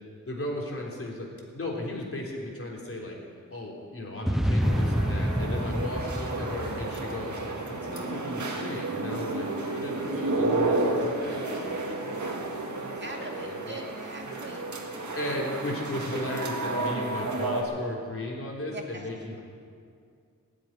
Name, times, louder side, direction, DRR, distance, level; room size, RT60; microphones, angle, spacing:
voice 1, 0.3-3.2 3.5-7.4 7.7-9.5 9.7-12.5 12.8-13.8 15.1-19.4, left 1 dB, 45° left, -2 dB, 3.6 m, -36 dB
sound 1, 4.3-7.8, equal, ahead, 0.5 m, -28 dB
sound 2, 4.6-17.6, right 2 dB, 65° right, 1.9 m, -31 dB
voice 2, 5.8-6.8 13.0-14.6 18.7-19.0, right 2 dB, 35° right, 0 dB, 2.4 m, -42 dB
18.5 x 7.7 x 10.0 m, 2.3 s
wide cardioid pair, 100°, 32 cm